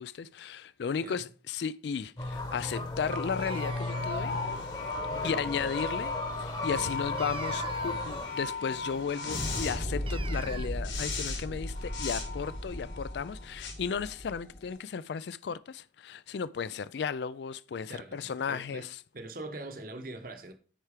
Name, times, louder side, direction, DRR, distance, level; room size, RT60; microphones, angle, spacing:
voice 1, 0.0-4.3 5.2-19.0, left 6 dB, 70° left, 0.4 m, -35 dB
voice 2, 1.0-1.3 5.1-5.4 6.8-7.1 7.8-8.0 17.9-18.9 19.1-20.5, right 2 dB, 50° right, 1.1 m, -43 dB
sound 1, 2.2-8.3, left 2 dB, 25° left, 1.1 m, -36 dB
sound 2, 2.3-14.7, left 2 dB, 85° left, 3.7 m, -36 dB
sound 3, 3.4-4.3 7.2-8.5 10.1-10.7, right 6 dB, 30° right, 0.4 m, -45 dB
10.0 x 4.7 x 4.9 m
head